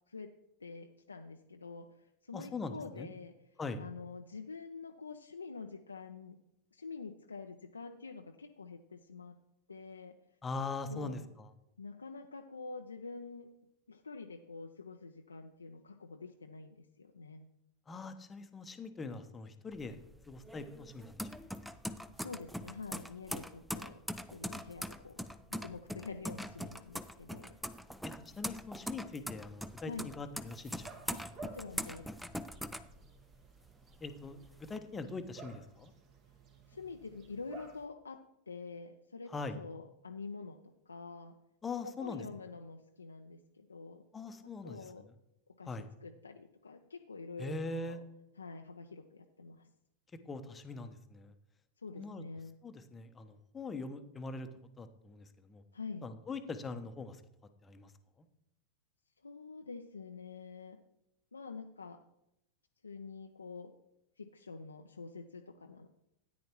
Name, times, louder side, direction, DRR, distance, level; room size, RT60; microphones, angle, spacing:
voice 1, 0.6-3.3 3.8-6.4 6.7-9.4 9.7-10.2 10.9-11.3 11.8-13.5 13.9-17.5 22.2-24.0 24.3-25.2 25.5-27.5 29.9-30.1 31.1-32.1 36.7-38.2 38.5-41.4 41.8-44.0 44.6-45.0 45.5-45.7 46.0-48.0 48.4-49.7 51.8-52.5 55.7-56.1 59.2-60.8 61.3-62.0 62.8-63.7 64.2-65.9, left 4 dB, 75° left, 4 dB, 0.5 m, -47 dB
voice 2, 2.3-3.1 3.6-3.8 10.4-11.5 17.9-20.0 20.3-21.3 28.0-31.1 34.0-35.9 39.3-39.6 41.6-42.2 44.1-45.1 45.6-45.9 47.4-48.0 50.2-51.3 52.0-52.2 52.6-54.5 54.8-55.6 56.0-57.2 57.6-57.9 58.2-58.3, left 3 dB, 15° left, 9 dB, 0.8 m, -42 dB
sound 1, 19.7-33.5 33.9-34.8, equal, ahead, 0.4 m, -42 dB
sound 2, 30.4-37.8, right 5 dB, 35° right, 1.3 m, -55 dB
13.5 x 9.5 x 3.0 m, 0.83 s
figure-of-eight pair, 90°, 0 cm